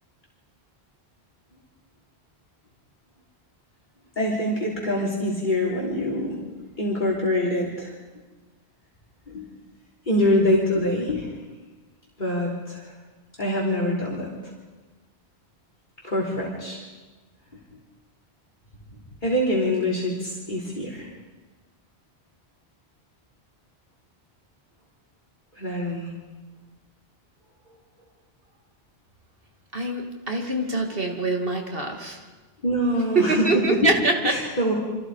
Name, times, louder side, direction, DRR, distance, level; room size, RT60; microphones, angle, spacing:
voice 1, 4.2-7.9 9.3-9.5 10.1-11.3 12.2-12.9 13.4-14.5 16.0-16.8 19.2-21.1 25.6-26.1 32.6-33.9 34.2-34.7, left 1 dB, 45° left, -4 dB, 3.7 m, -25 dB
voice 2, 29.7-32.2 33.1-34.4, right 3 dB, 60° right, 2 dB, 2.9 m, -24 dB
29.5 x 25.0 x 5.0 m, 1.3 s
omnidirectional pair, 1.1 m